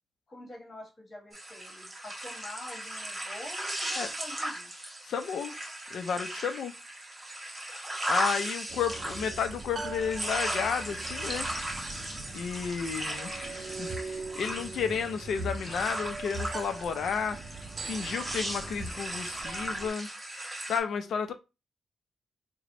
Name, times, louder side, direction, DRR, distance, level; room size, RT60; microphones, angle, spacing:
voice 1, 0.3-4.7, left 1 dB, 30° left, 1.6 m, -46 dB
sound 1, 1.3-20.8, right 1 dB, 15° right, 0.9 m, -37 dB
voice 2, 5.0-5.6 5.9-6.7 8.1-11.5 12.3-17.4 17.8-20.1 20.7-21.3, left 6 dB, 65° left, 0.6 m, -32 dB
sound 2, 8.7-19.9, right 3 dB, 40° right, 0.4 m, -41 dB
3.3 x 2.2 x 3.8 m
wide cardioid pair, 160°, 0 cm